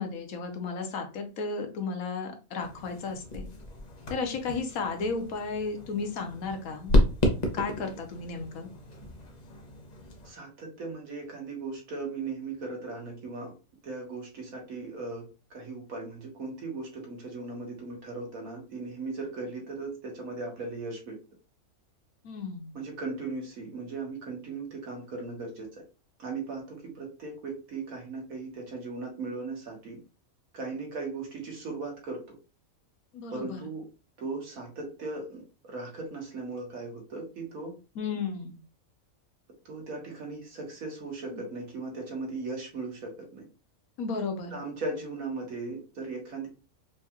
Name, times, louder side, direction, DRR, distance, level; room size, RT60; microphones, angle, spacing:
voice 1, 0.0-3.5 4.1-6.9 7.5-8.7 22.2-22.7 33.1-33.6 37.9-38.6 41.3-41.4 44.0-44.6, left 4 dB, 85° left, 5 dB, 1.3 m, -34 dB
sound 1, 2.6-10.3, left 1 dB, 40° left, 0.7 m, -31 dB
voice 2, 10.2-13.5 13.8-21.2 22.7-25.7 26.2-30.0 30.5-32.3 33.3-33.8 34.2-37.7 39.6-43.4 44.5-46.5, right 3 dB, 80° right, 0 dB, 1.7 m, -38 dB
4.8 x 2.3 x 2.8 m, 0.32 s
omnidirectional pair, 1.4 m